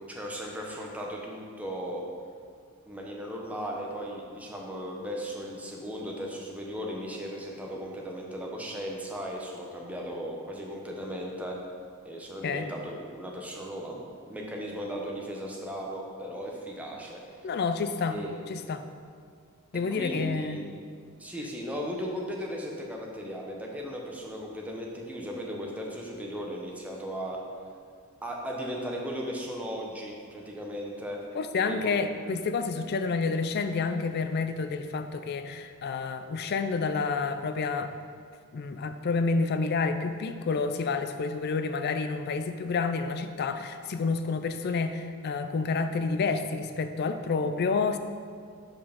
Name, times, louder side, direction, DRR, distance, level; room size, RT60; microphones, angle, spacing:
voice 1, 0.1-2.0 2.9-11.6 12.0-17.2 18.1-18.3 19.7-20.6 21.2-27.4 28.2-31.2 31.6-32.1, equal, 5° right, -2 dB, 0.7 m, -36 dB
voice 2, 17.4-18.2 18.5-18.8 19.7-20.6 31.3-37.9 38.5-48.0, left 4 dB, 45° left, 9 dB, 0.4 m, -29 dB
5.2 x 4.7 x 5.7 m, 2.1 s
head